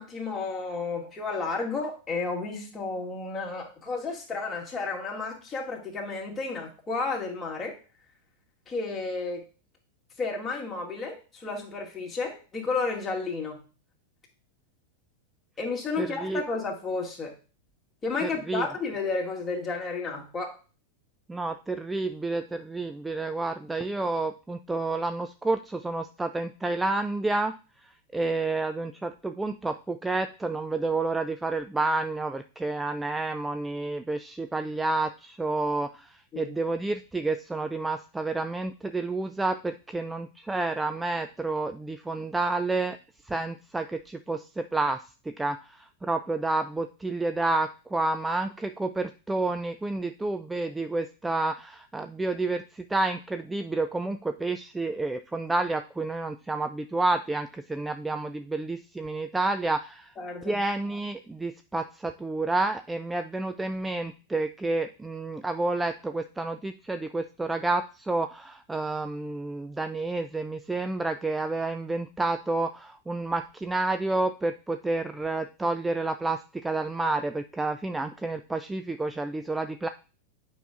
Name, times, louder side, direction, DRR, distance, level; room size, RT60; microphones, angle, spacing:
voice 1, 0.0-7.8 8.7-9.4 10.2-13.6 15.6-17.3 18.0-20.6 36.3-36.5 60.2-60.6, left 4 dB, 20° left, -1 dB, 2.0 m, -32 dB
voice 2, 16.0-16.4 18.2-18.7 21.3-27.5 27.8-43.0 43.2-60.1 60.4-79.9, right 2 dB, 10° right, 8 dB, 0.3 m, -30 dB
9.0 x 5.6 x 2.5 m, 0.35 s
figure-of-eight pair, 90°, 0 cm